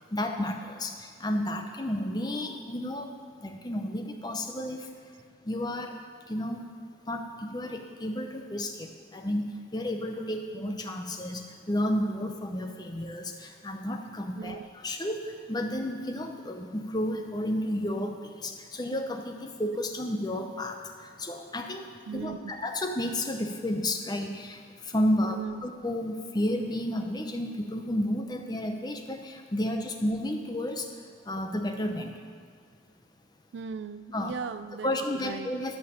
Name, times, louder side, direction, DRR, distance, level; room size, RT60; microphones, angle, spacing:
voice 1, 0.1-3.1 3.4-4.9 5.5-6.0 6.3-6.6 7.1-20.8 21.2-21.9 22.1-24.6 24.8-30.9 31.3-32.2 34.1-34.3 34.8-35.8, left 1 dB, 20° left, 4 dB, 0.7 m, -32 dB
voice 2, 22.1-22.5 25.2-25.7 33.5-35.5, right 6 dB, 60° right, 13 dB, 0.3 m, -38 dB
11.5 x 5.7 x 7.1 m, 2.1 s
head